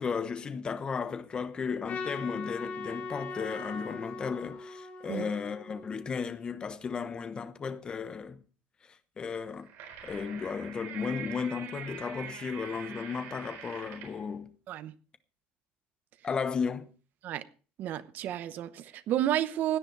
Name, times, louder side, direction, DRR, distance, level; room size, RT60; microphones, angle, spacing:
voice 1, 0.0-8.4 9.2-9.7 10.0-14.5 16.2-16.9, left 6 dB, 20° left, 1.0 m, -34 dB
Trumpet, 1.9-6.2, left 3 dB, 35° left, 3.1 m, -40 dB
sound 1, 9.4-14.2, right 8 dB, 70° right, 4.3 m, -44 dB
voice 2, 17.8-19.8, right 12 dB, 45° right, 0.9 m, -31 dB
17.0 x 9.9 x 4.7 m
cardioid pair, 170°, 4 cm